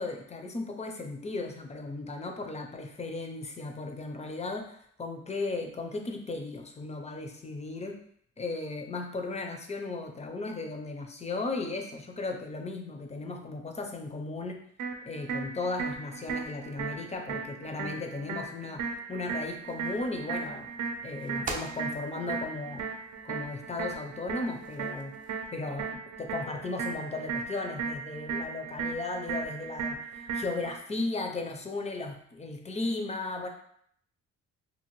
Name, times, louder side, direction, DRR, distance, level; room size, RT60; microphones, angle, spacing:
voice 1, 0.0-8.0 8.4-14.6 15.1-20.7 21.0-22.8 23.2-25.1 25.5-33.5, left 3 dB, 20° left, 4 dB, 0.5 m, -36 dB
sound 1, 14.8-30.8, right 5 dB, 70° right, 0.6 m, -37 dB
sound 2, 19.3-25.6, right 2 dB, 30° right, 0.4 m, -46 dB
2.7 x 2.5 x 2.9 m, 0.66 s
cardioid pair, 90°, 30 cm